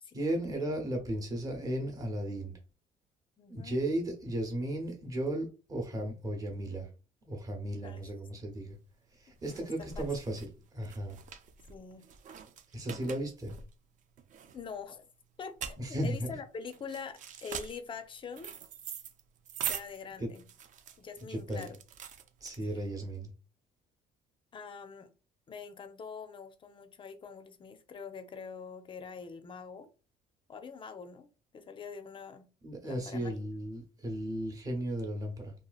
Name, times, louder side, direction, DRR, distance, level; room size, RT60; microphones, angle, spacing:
voice 1, 0.1-2.5 3.5-6.9 7.3-8.8 9.2-11.2 12.7-13.5 15.8-16.3 20.2-20.3 21.3-21.7 22.4-23.3 32.6-35.5, right 1 dB, 20° right, 0.9 m, -35 dB
voice 2, 3.4-3.8 7.8-8.1 9.5-10.1 11.7-12.1 14.5-15.1 15.4-18.5 19.7-20.4 21.0-21.8 22.6-22.9 24.5-25.1 25.5-29.9 30.5-32.5 32.8-33.3, left 5 dB, 30° left, 0.5 m, -44 dB
sound 1, 8.6-23.0, right 8 dB, 50° right, 0.4 m, -44 dB
2.8 x 2.4 x 2.3 m
cardioid pair, 110°, 17 cm